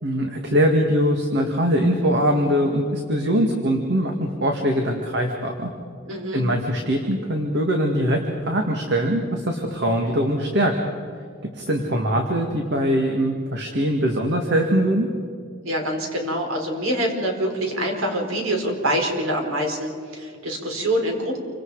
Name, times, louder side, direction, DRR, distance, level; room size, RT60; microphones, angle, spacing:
voice 1, 0.0-5.7 6.3-10.7 11.5-15.1, equal, 55° right, 2 dB, 2.1 m, -22 dB
voice 2, 6.1-6.4 15.6-21.4, equal, 80° right, 2 dB, 4.7 m, -25 dB
28.5 x 25.0 x 5.0 m, 2.1 s
head